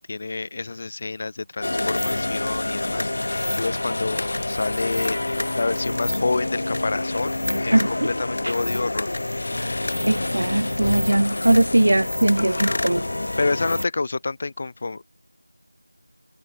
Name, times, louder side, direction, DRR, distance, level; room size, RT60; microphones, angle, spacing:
voice 1, 0.1-7.4 7.6-9.1 13.4-15.0, left 3 dB, 20° left, 2.6 m, -28 dB
sound 1, 1.6-13.9, left 2 dB, 35° left, 1.7 m, -27 dB
voice 2, 7.7-8.1 8.4-8.5 10.1-13.0, right 1 dB, 50° right, 0.9 m, -20 dB
figure-of-eight pair, 180°, 0 cm